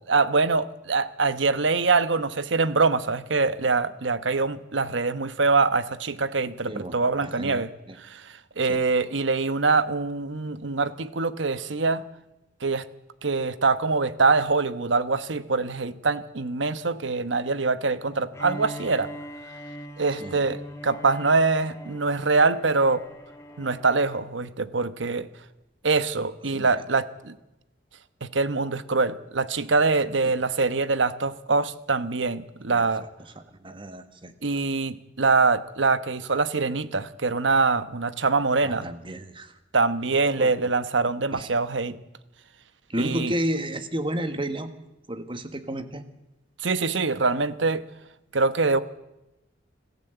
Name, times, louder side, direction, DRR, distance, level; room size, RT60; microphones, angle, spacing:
voice 1, 0.1-7.7 8.0-12.0 12.6-12.8 13.2-19.1 20.0-23.0 23.6-25.3 25.8-27.4 28.2-33.0 34.4-38.9 39.7-42.0 43.0-43.3 46.6-47.8 48.3-48.8, right 4 dB, 70° right, 13 dB, 1.1 m, -24 dB
voice 2, 6.6-8.0 8.7-8.8 20.2-20.4 26.5-26.8 32.7-32.8 33.3-34.6 38.6-39.5 40.4-40.7 41.3-41.5 42.9-44.7 45.1-46.0, right 1 dB, 25° right, 9 dB, 1.6 m, -32 dB
Bowed string instrument, 18.3-24.4, equal, 15° left, 2.6 m, -42 dB
26.0 x 15.0 x 8.0 m, 0.95 s
head